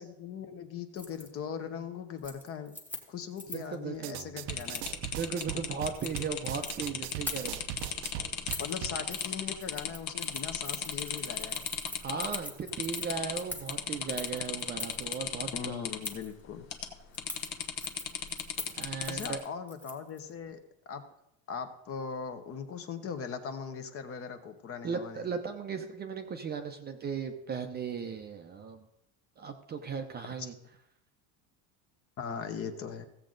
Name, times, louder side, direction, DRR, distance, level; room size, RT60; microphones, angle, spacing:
voice 1, 0.0-2.8 3.1-4.9 8.6-11.6 15.5-16.7 19.1-20.6 20.9-21.0 21.5-25.2 30.4-30.5 32.2-33.1, left 6 dB, 35° left, 8 dB, 0.9 m, -39 dB
Keys jangling, 1.0-1.3 1.6-1.9 2.2-3.8 4.6-4.9 5.8-6.7 7.1-7.8 8.5-8.8 9.1-9.3 9.6-15.2 16.0-16.3 17.1-20.2 20.5-20.6, left 1 dB, 5° left, 1.2 m, -43 dB
voice 2, 3.5-4.2 5.1-7.6 12.0-15.9 18.8-19.4 24.8-28.8 29.4-30.5, right 6 dB, 25° right, 6 dB, 0.6 m, -37 dB
sound 1, 3.9-9.0, right 13 dB, 85° right, 0.7 m, -40 dB
sound 2, 4.5-12.4 12.7-13.4 13.7-16.1 16.7-16.9 17.2-19.4, left 8 dB, 60° left, 1.2 m, -35 dB
15.5 x 7.5 x 3.9 m, 0.82 s
cardioid pair, 155°, 42 cm